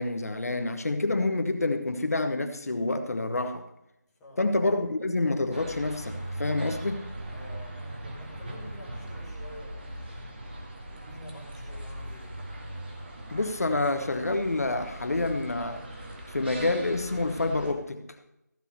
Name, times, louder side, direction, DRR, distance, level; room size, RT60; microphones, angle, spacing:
voice 1, 0.0-3.6 4.4-7.1 13.3-15.9 16.3-18.1, left 2 dB, 55° left, 1.1 m, -28 dB
voice 2, 4.1-4.5 7.3-10.0 10.9-12.4, left 1 dB, 5° left, 1.4 m, -48 dB
sound 1, 5.5-17.7, right 1 dB, 35° right, 1.8 m, -40 dB
15.0 x 5.7 x 6.8 m
figure-of-eight pair, 170°, 10 cm